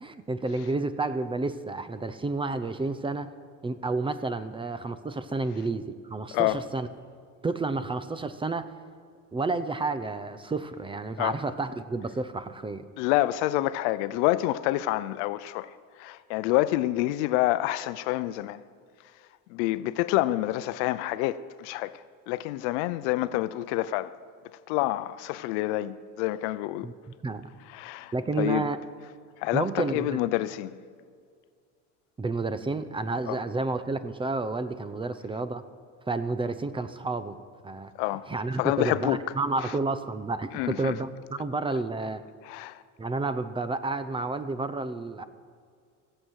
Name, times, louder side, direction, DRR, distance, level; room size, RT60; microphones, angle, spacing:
voice 1, 0.0-3.3 3.6-6.9 7.4-8.7 9.3-12.9 26.8-26.9 27.2-27.4 28.1-28.8 29.5-30.2 32.2-35.6 36.1-37.4 37.6-37.9 38.3-42.2 43.0-45.2, right 3 dB, 15° right, 0.6 m, -30 dB
voice 2, 6.3-6.6 11.2-11.4 13.0-18.6 19.5-24.1 24.7-26.9 27.7-28.7 29.4-30.8 33.3-33.4 38.0-38.3 38.6-39.2 39.6-39.7 40.5-41.0 42.4-42.8, left 16 dB, 80° left, 0.6 m, -28 dB
17.0 x 7.7 x 6.4 m
supercardioid pair, 105°, 35 cm